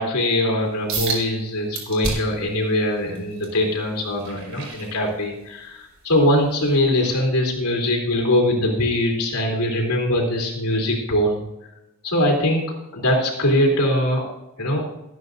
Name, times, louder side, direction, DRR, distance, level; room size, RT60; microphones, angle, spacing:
voice 1, 0.0-11.4 12.0-12.7 12.9-14.3 14.6-14.8, left 1 dB, 90° left, 0 dB, 3.4 m, -22 dB
sound 1, 0.9-1.2 1.7-2.4 2.9-5.5 6.0-6.2 6.7-6.8, right 3 dB, 60° right, 5.0 m, -30 dB
19.0 x 9.1 x 2.7 m, 0.92 s
head